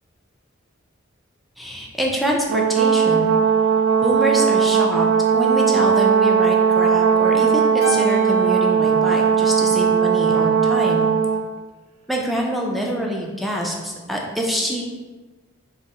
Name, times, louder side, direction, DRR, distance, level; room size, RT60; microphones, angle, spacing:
voice 1, 1.6-3.3 4.0-5.1 5.3-11.1 12.1-14.8, equal, ahead, -2 dB, 0.4 m, -25 dB
Brass instrument, 2.5-11.4, right 7 dB, 90° right, 0.3 m, -18 dB
Keyboard (musical), 7.8-10.3, left 2 dB, 75° left, 0.4 m, -36 dB
2.6 x 2.4 x 4.1 m, 1.3 s
head